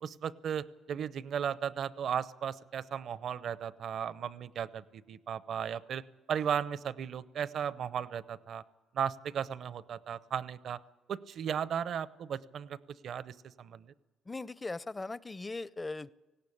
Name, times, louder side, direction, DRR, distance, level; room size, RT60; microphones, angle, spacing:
voice 1, 0.0-6.0 6.3-8.6 8.9-10.8 11.1-12.8 13.0-13.9, right 8 dB, 65° right, 17 dB, 0.7 m, -36 dB
voice 2, 14.3-16.1, left 3 dB, 20° left, 18 dB, 0.6 m, -39 dB
18.5 x 16.5 x 8.6 m, 1.2 s
cardioid pair, 90°, 0 cm